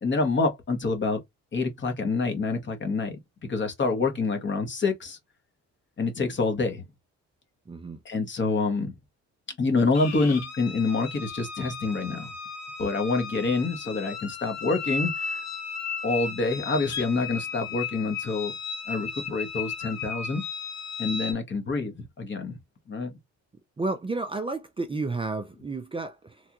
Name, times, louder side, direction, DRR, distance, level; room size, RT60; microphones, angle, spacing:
voice 1, 0.0-1.2 1.5-5.2 6.0-6.8 8.0-8.9 9.6-12.3 12.8-15.4 16.0-18.5 18.9-20.4 21.0-22.6 22.9-23.1, left 3 dB, 40° left, 1.3 m, -27 dB
voice 2, 7.7-8.0 23.8-26.4, right 3 dB, 20° right, 0.5 m, -31 dB
sound 1, 9.9-21.3, left 5 dB, 60° left, 1.3 m, -35 dB
3.4 x 2.4 x 2.9 m
cardioid pair, 90°, 30 cm